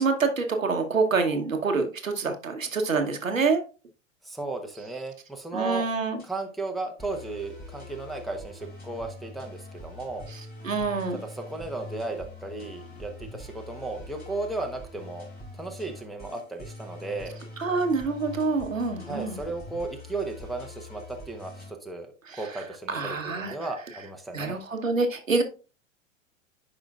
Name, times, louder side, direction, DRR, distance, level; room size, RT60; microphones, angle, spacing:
voice 1, 0.0-3.6 5.5-6.2 10.6-11.2 17.6-19.4 22.3-22.4 22.9-23.5 24.3-25.4, right 4 dB, 85° right, 5 dB, 1.1 m, -26 dB
voice 2, 4.2-5.9 6.2-10.3 11.2-15.3 15.5-17.3 19.0-24.6, right 3 dB, ahead, 2 dB, 0.9 m, -35 dB
sound 1, 5.8-6.3 7.0-21.7, left 2 dB, 25° left, 3.3 m, -44 dB
10.0 x 4.9 x 2.3 m, 0.34 s
figure-of-eight pair, 90°, 39 cm